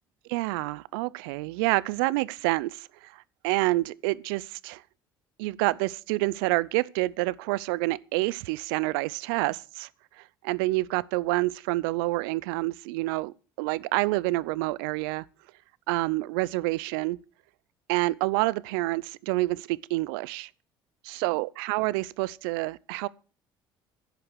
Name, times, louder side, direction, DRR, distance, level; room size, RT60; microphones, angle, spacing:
voice 1, 0.3-4.8 5.4-9.9 10.4-15.2 15.9-17.2 17.9-20.5 21.1-23.1, right 21 dB, 75° right, 0.6 m, -28 dB
11.0 x 8.8 x 6.7 m
hypercardioid pair, 60°, 12 cm